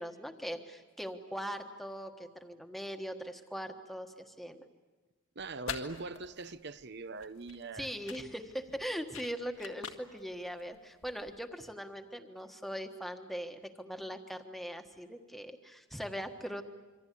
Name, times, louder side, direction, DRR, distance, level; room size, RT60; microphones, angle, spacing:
voice 1, 0.0-4.6 7.7-16.6, equal, ahead, 1.5 m, -41 dB
voice 2, 5.3-7.9, right 3 dB, 55° right, 0.9 m, -42 dB
sound 1, 5.4-11.4, left 6 dB, 80° left, 1.9 m, -46 dB
26.5 x 24.5 x 8.5 m
head